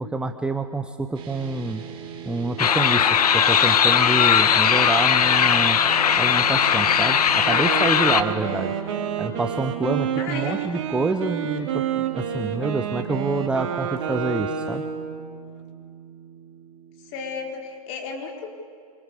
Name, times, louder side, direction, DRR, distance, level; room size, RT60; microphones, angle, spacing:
voice 1, 0.0-1.8 2.3-5.8 6.2-8.7 9.2-14.8, right 3 dB, 5° right, 7 dB, 0.8 m, -27 dB
sound 1, 1.1-17.5, right 9 dB, 25° right, 3.8 m, -39 dB
sound 2, 2.6-8.2, left 8 dB, 70° left, 1.5 m, -19 dB
Wind instrument woodwind instrument, 7.4-15.3, right 8 dB, 45° right, 3.0 m, -29 dB
voice 2, 10.2-10.7 17.0-18.5, left 5 dB, 35° left, 2 dB, 4.4 m, -34 dB
28.0 x 25.0 x 8.3 m, 2.5 s
hypercardioid pair, 130°, 20 cm